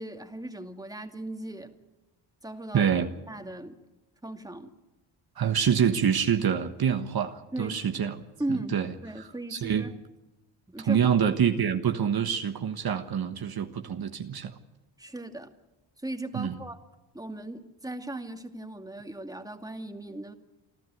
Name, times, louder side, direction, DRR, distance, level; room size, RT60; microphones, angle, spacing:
voice 1, 0.0-1.7 2.4-2.9 3.3-3.8 4.2-4.7 7.5-7.8 8.4-10.0 10.7-11.2 15.0-15.5 16.0-16.8 17.1-20.3, right 1 dB, 10° right, 2.3 m, -37 dB
voice 2, 2.7-3.1 5.4-8.2 8.7-8.9 9.2-9.9 10.8-14.5 16.3-16.6, right 8 dB, 55° right, 1.5 m, -26 dB
29.0 x 12.0 x 9.4 m
supercardioid pair, 65°, 46 cm